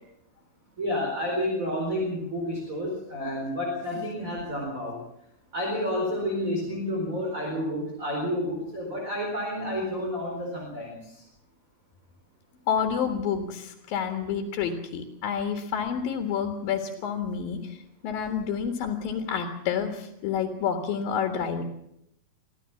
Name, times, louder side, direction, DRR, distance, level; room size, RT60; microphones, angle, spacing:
voice 1, 0.8-5.0 5.5-11.2, left 1 dB, 20° right, -1 dB, 4.6 m, -30 dB
voice 2, 12.7-17.8 18.0-21.6, left 7 dB, 75° left, 4 dB, 3.5 m, -29 dB
24.0 x 15.0 x 7.1 m, 0.77 s
omnidirectional pair, 4.3 m